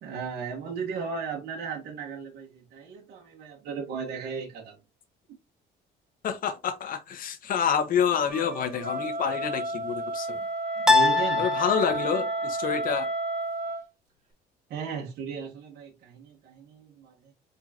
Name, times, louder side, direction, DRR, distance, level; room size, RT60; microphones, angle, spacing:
voice 1, 0.0-4.8 10.8-11.4 14.7-17.3, right 6 dB, 70° right, 1.4 m, -36 dB
voice 2, 6.2-10.5 11.4-13.1, left 7 dB, 55° left, 1.1 m, -28 dB
sound 1, 8.3-9.0 10.9-12.3, left 3 dB, 5° right, 0.6 m, -25 dB
Wind instrument woodwind instrument, 8.8-13.8, right 2 dB, 45° right, 2.1 m, -31 dB
4.6 x 3.9 x 2.9 m
cardioid pair, 110°, 17 cm